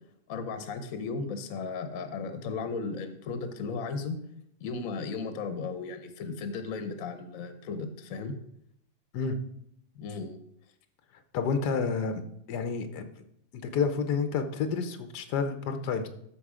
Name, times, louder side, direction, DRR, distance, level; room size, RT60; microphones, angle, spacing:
voice 1, 0.3-4.2 4.6-8.3 9.9-10.4, left 4 dB, 60° left, 9 dB, 1.3 m, -35 dB
voice 2, 11.3-12.2 12.5-13.0 13.5-16.1, left 5 dB, 90° left, 9 dB, 1.4 m, -29 dB
13.0 x 4.8 x 5.0 m, 0.72 s
omnidirectional pair, 1.7 m